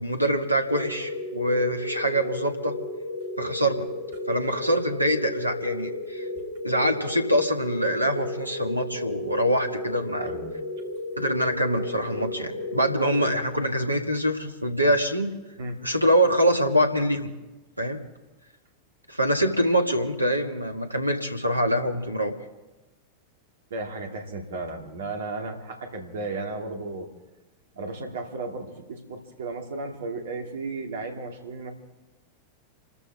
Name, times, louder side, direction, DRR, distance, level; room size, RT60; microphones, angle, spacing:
voice 1, 0.0-2.7 3.4-3.9 4.3-6.3 6.6-10.3 11.2-15.3 15.8-17.3 17.8-18.0 19.1-22.3, equal, 85° right, 6 dB, 1.6 m, -24 dB
sound 1, 0.7-13.8, left 1 dB, 55° left, 5.1 m, -34 dB
voice 2, 10.2-10.5 15.6-15.8 23.7-27.1 27.7-31.7, right 3 dB, 60° right, 3 dB, 2.5 m, -34 dB
28.0 x 14.0 x 3.6 m, 1.1 s
figure-of-eight pair, 90°, 0 cm